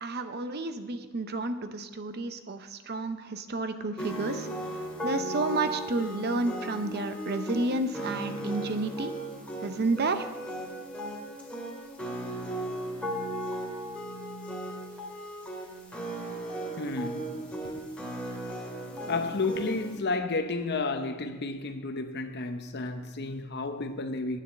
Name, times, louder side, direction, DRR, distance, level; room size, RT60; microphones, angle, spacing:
voice 1, 0.0-4.5 5.0-9.1 9.6-10.3, right 2 dB, 50° right, 0.7 m, -31 dB
sound 1, 4.0-20.0, right 1 dB, 5° left, 2.0 m, -36 dB
voice 2, 16.8-17.7 19.1-24.4, left 3 dB, 50° left, 0.8 m, -32 dB
9.3 x 7.0 x 7.7 m
head